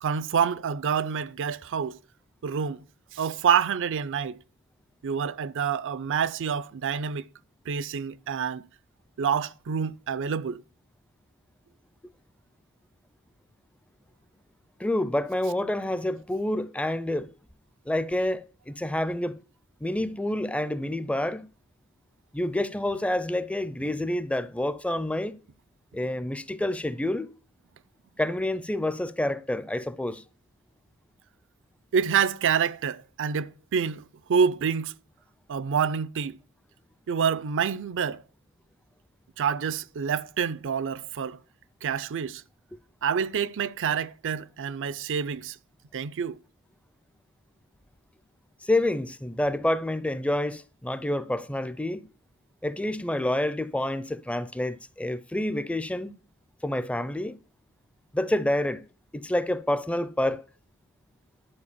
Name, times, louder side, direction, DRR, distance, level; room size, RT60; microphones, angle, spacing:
voice 1, 0.0-2.0 2.4-2.8 3.1-4.4 5.0-7.3 7.7-8.6 9.2-10.6 31.9-34.9 35.5-36.4 37.1-38.2 39.4-41.4 41.8-42.4 43.0-45.6 45.9-46.4, right 7 dB, 60° right, 0.4 m, -27 dB
voice 2, 14.8-17.3 17.9-19.4 19.8-21.5 22.3-25.4 25.9-27.3 28.2-30.2 48.6-52.0 52.6-56.2 56.6-57.4 58.1-58.8 59.1-60.4, left 1 dB, 5° left, 0.4 m, -28 dB
11.0 x 4.6 x 7.2 m
head